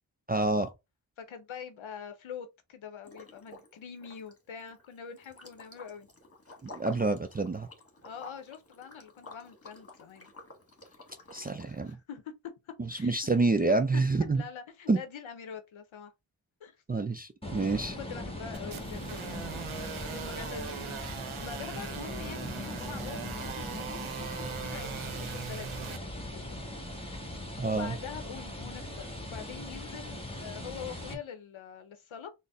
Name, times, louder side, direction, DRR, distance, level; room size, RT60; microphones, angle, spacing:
voice 1, 0.3-0.7 6.6-7.7 11.3-12.0 12.8-14.4 14.9-15.0 16.9-18.0 27.6-28.0, right 3 dB, 20° right, 0.3 m, -28 dB
voice 2, 1.2-6.1 8.0-10.3 11.6-12.3 12.6-13.3 13.9-16.1 16.6-16.8 18.0-20.8 21.4-26.8 27.6-32.3, left 7 dB, 75° left, 0.7 m, -45 dB
Liquid, 3.0-3.7 4.0-11.9, left 2 dB, 30° left, 1.3 m, -51 dB
sound 1, 17.4-31.1, left 1 dB, 10° left, 1.1 m, -40 dB
sound 2, 18.5-26.0, right 8 dB, 80° right, 0.7 m, -40 dB
4.0 x 2.0 x 3.4 m
cardioid pair, 50°, 48 cm